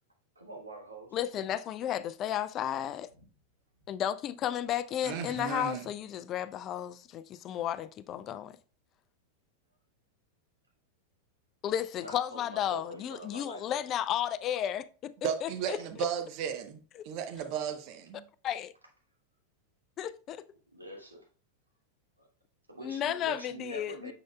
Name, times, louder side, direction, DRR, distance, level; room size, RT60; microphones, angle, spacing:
voice 1, 0.3-1.2 3.2-3.3 11.9-13.8 20.7-21.3 22.2-22.3 22.7-24.1, equal, 80° right, 1.4 m, -45 dB
voice 2, 1.1-3.1 3.9-8.6 11.6-15.1 15.4-15.8 17.0-17.1 18.4-18.7 20.0-20.4 22.8-24.1, left 10 dB, 30° left, 0.4 m, -33 dB
voice 3, 5.0-5.9 15.2-16.8 17.0-18.2, right 8 dB, 45° right, 0.7 m, -34 dB
6.7 x 6.3 x 2.3 m
figure-of-eight pair, 90°, 0 cm